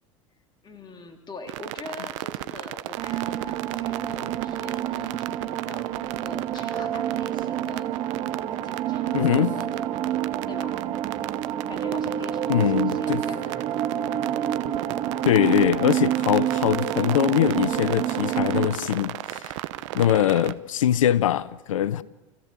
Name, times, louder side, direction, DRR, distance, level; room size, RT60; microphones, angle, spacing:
voice 1, 0.6-7.9 8.6-9.8 10.5-10.8 11.7-13.4, left 3 dB, 25° left, 2.8 m, -43 dB
sound 1, 1.5-20.5, right 16 dB, 70° right, 0.9 m, -35 dB
sound 2, 3.0-18.7, right 11 dB, 45° right, 1.9 m, -28 dB
voice 2, 9.1-9.5 12.5-13.2 15.2-19.5 19.9-22.0, left 11 dB, 85° left, 0.7 m, -22 dB
29.5 x 15.5 x 7.2 m
hypercardioid pair, 90°, 17 cm